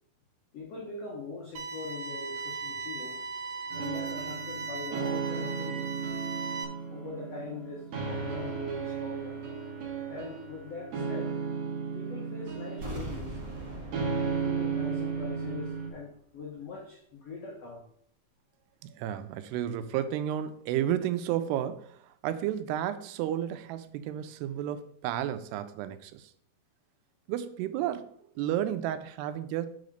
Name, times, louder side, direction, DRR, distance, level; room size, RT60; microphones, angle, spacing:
voice 1, 0.5-3.3 3.7-5.9 6.9-9.4 10.1-11.4 11.9-13.4 14.2-17.8, left 3 dB, 80° left, -2 dB, 1.4 m, -42 dB
sound 1, 1.6-6.7, right 4 dB, 70° right, 2.6 m, -38 dB
sound 2, 3.7-15.9, right 5 dB, 55° right, 2.1 m, -35 dB
sound 3, 12.8-15.7 15.9-16.0, right 1 dB, 40° right, 1.8 m, -42 dB
voice 2, 18.8-26.3 27.3-29.7, right 11 dB, 90° right, 11 dB, 2.7 m, -32 dB
5.3 x 4.9 x 6.4 m, 0.65 s
omnidirectional pair, 4.6 m